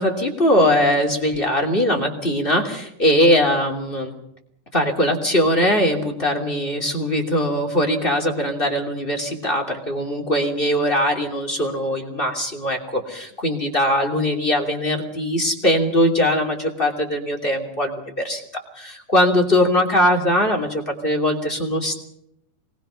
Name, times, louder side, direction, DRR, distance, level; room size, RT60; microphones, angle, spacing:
voice 1, 0.0-4.1 4.7-18.4 18.8-21.9, equal, 15° left, 4 dB, 2.1 m, -21 dB
25.5 x 21.5 x 5.8 m, 0.78 s
omnidirectional pair, 5.1 m